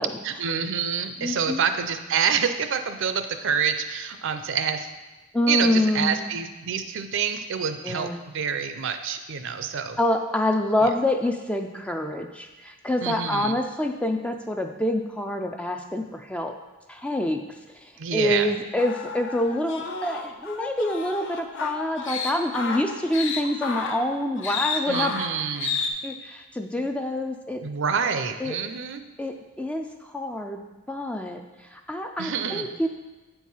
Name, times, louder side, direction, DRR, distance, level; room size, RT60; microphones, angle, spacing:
voice 1, 0.2-4.9 5.5-10.0 13.0-13.6 18.0-18.5 24.9-25.7 27.6-29.0 32.2-32.7, right 6 dB, 55° right, 9 dB, 0.5 m, -27 dB
voice 2, 1.2-1.6 5.3-6.3 7.8-8.2 10.0-16.5 16.9-17.4 17.7-25.1 26.0-27.6 28.4-28.6 29.2-30.6 30.9-31.4 31.7-32.9, left 1 dB, 5° left, 5 dB, 0.3 m, -26 dB
sound 1, 18.8-25.9, left 5 dB, 55° left, 0.6 m, -32 dB
8.0 x 4.6 x 5.5 m, 1.1 s
head